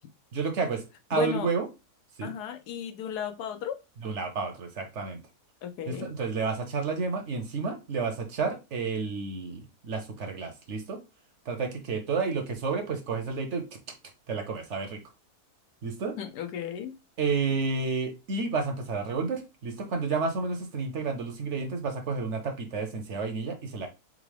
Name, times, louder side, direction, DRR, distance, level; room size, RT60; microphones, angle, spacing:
voice 1, 0.3-0.8 1.1-1.7 2.2-2.4 4.0-5.2 5.9-11.0 11.5-13.7 14.3-15.0 15.8-16.2 17.2-23.9, right 4 dB, 60° right, 0.9 m, -31 dB
voice 2, 1.1-1.5 2.2-3.8 5.6-6.1 16.2-16.9, left 9 dB, 85° left, 1.2 m, -34 dB
3.7 x 3.7 x 3.2 m
omnidirectional pair, 1.7 m